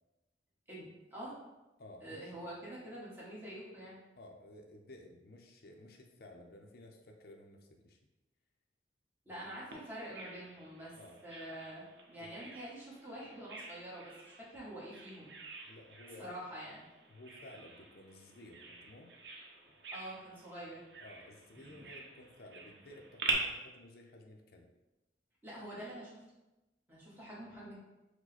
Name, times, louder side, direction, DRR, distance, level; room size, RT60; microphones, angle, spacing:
voice 1, 0.7-1.4 2.0-4.0 9.2-10.9 11.2-15.4 16.2-16.8 19.9-20.8 25.4-26.2 26.9-27.8, right 1 dB, 10° right, -7 dB, 1.2 m, -46 dB
voice 2, 1.8-2.3 4.2-8.0 9.3-9.4 11.0-11.2 12.2-12.4 15.6-16.3 17.1-19.1 21.0-24.7, left 1 dB, 60° left, 3 dB, 0.5 m, -54 dB
Bird vocalization bird call bird song, 9.7-23.3, right 4 dB, 75° right, 0.7 m, -46 dB
4.7 x 2.2 x 4.1 m, 1.0 s
head